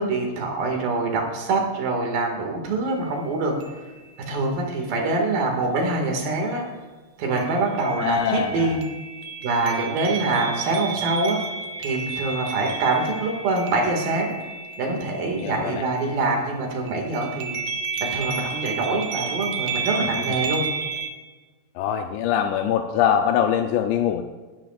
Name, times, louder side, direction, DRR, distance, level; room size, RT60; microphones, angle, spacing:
voice 1, 0.0-3.5 4.3-6.6 7.2-8.8 9.4-11.4 11.8-14.3 14.8-17.6 18.0-20.7, right 3 dB, 60° right, 1 dB, 3.5 m, -24 dB
sound 1, 2.9-3.0 3.6-4.2 7.4-16.5 16.9-21.1, right 5 dB, 75° right, 2.1 m, -32 dB
voice 2, 8.0-8.8 15.4-15.9 21.8-24.2, left 9 dB, 80° left, 5 dB, 2.8 m, -23 dB
20.5 x 12.0 x 2.5 m, 1.3 s
omnidirectional pair, 5.2 m